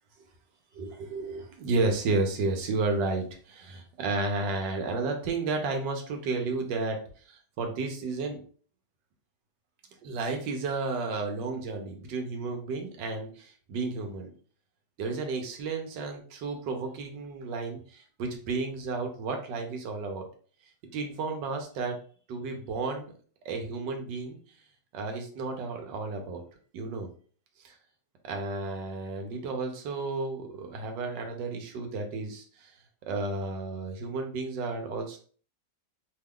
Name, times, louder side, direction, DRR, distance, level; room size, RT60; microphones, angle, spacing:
voice 1, 0.7-7.0 7.6-8.4 10.0-14.3 15.0-17.8 18.2-20.3 20.9-22.0 22.3-23.1 23.4-24.4 24.9-26.4 26.7-27.1 28.3-32.4 33.1-35.2, right 3 dB, 90° right, 3 dB, 1.4 m, -32 dB
3.1 x 2.3 x 3.5 m, 0.43 s
omnidirectional pair, 1.9 m